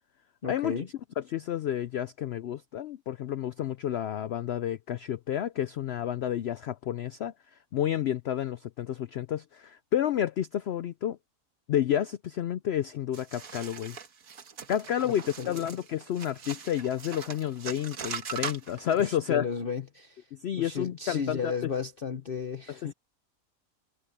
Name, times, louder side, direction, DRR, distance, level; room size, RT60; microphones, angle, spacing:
voice 1, 0.4-0.9 15.1-15.6 19.0-20.3 20.5-22.9, left 6 dB, 40° left, 0.9 m, -34 dB
voice 2, 1.2-11.2 11.7-14.0 14.7-19.5 20.3-21.7 22.7-22.9, left 10 dB, 85° left, 0.5 m, -30 dB
sound 1, 13.1-19.1, right 6 dB, 60° right, 1.8 m, -40 dB
omnidirectional pair, 1.7 m